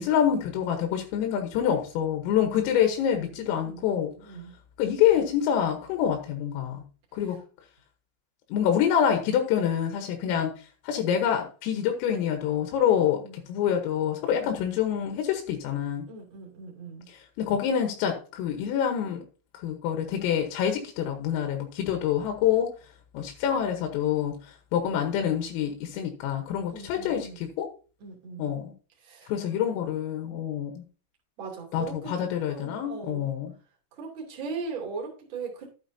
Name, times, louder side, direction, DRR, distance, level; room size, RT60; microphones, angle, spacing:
voice 1, 0.0-4.1 4.8-6.8 7.1-7.4 8.5-10.5 10.8-13.2 13.5-16.1 17.1-19.2 19.5-22.7 23.1-27.7 28.4-28.7 29.3-30.8 31.7-33.5, left 9 dB, 85° left, 4 dB, 3.8 m, -26 dB
voice 2, 3.2-4.5 10.2-10.5 12.9-13.4 14.4-14.6 16.1-17.1 26.7-27.5 28.0-28.5 29.0-29.3 31.4-32.1 32.5-33.3 34.0-35.7, right 4 dB, 35° right, -1 dB, 2.4 m, -39 dB
12.0 x 8.8 x 2.7 m, 0.36 s
omnidirectional pair, 5.8 m